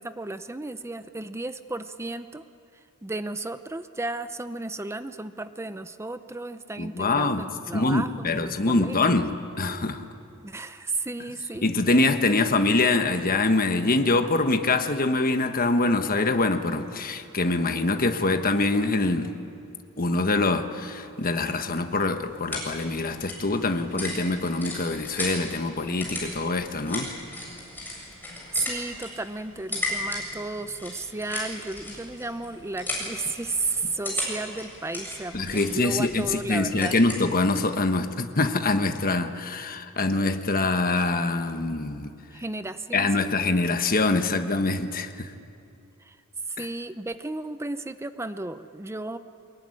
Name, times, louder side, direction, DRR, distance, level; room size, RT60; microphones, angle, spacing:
voice 1, 0.0-2.5 3.0-9.2 10.4-11.7 28.5-36.9 42.3-43.3 46.0-46.2 46.6-49.2, right 2 dB, 10° right, 11 dB, 0.6 m, -33 dB
voice 2, 6.8-7.5 7.7-10.1 11.6-19.3 20.0-27.1 35.3-42.1 42.9-45.3, left 2 dB, 40° left, 7 dB, 1.3 m, -24 dB
sound 1, 22.2-37.8, left 1 dB, 10° left, 7.8 m, -37 dB
24.0 x 21.5 x 9.9 m, 2.6 s
head